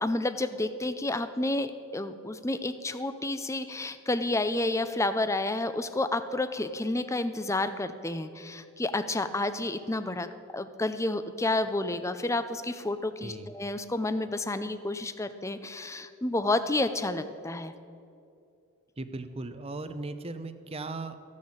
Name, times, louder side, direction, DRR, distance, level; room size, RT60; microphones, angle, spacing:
voice 1, 0.0-10.3 10.5-17.7, left 2 dB, 15° left, 11 dB, 0.5 m, -30 dB
voice 2, 13.2-13.5 19.0-21.2, right 2 dB, 25° right, 10 dB, 0.7 m, -37 dB
15.0 x 6.4 x 8.6 m, 2.5 s
head